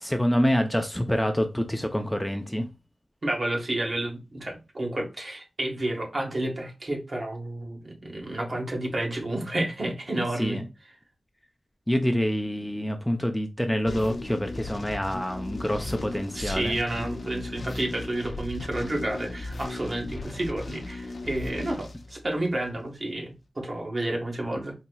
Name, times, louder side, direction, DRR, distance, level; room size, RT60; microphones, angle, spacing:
voice 1, 0.0-2.7 10.4-10.6 11.9-16.8, equal, 10° left, 0.5 m, -26 dB
voice 2, 3.2-10.6 16.3-24.7, right 1 dB, 50° right, 1.4 m, -30 dB
sound 1, 13.9-22.7, left 2 dB, 60° left, 0.7 m, -37 dB
4.1 x 2.9 x 2.2 m
wide cardioid pair, 70°, 0 cm